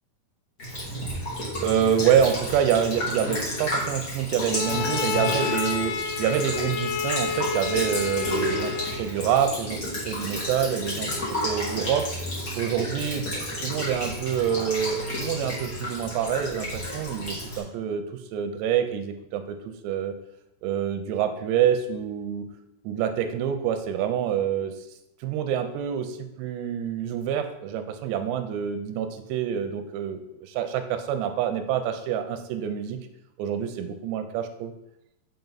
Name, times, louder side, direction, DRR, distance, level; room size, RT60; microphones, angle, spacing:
Child speech kid speaking / Bird vocalization bird call bird song / Stream, 0.6-17.6, left 1 dB, 40° left, 1.3 m, -31 dB
voice 1, 1.6-12.1 12.5-13.3 13.6-18.0 18.3-19.6 19.8-20.1 20.6-22.5 22.8-24.7 25.2-33.0 33.4-34.7, right 8 dB, 90° right, 8 dB, 2.8 m, -27 dB
Bowed string instrument, 4.5-9.1, left 7 dB, 85° left, 2.5 m, -30 dB
6.7 x 4.5 x 4.0 m, 0.85 s
omnidirectional pair, 4.8 m